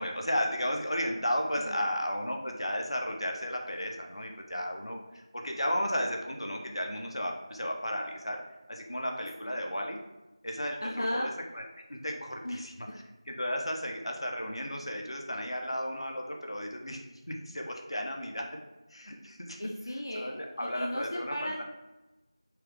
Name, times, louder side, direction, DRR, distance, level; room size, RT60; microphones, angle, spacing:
voice 1, 0.0-8.4 8.7-10.0 10.4-11.3 11.5-11.6 11.9-12.9 13.3-17.0 17.3-18.6 18.9-19.6 20.1-20.3 20.6-21.3, equal, 70° left, 1 dB, 0.8 m, -34 dB
voice 2, 10.8-11.3 12.4-12.6 19.6-21.6, left 1 dB, 35° left, -1 dB, 0.3 m, -35 dB
4.8 x 2.1 x 4.6 m, 1.0 s
figure-of-eight pair, 175°, 3 cm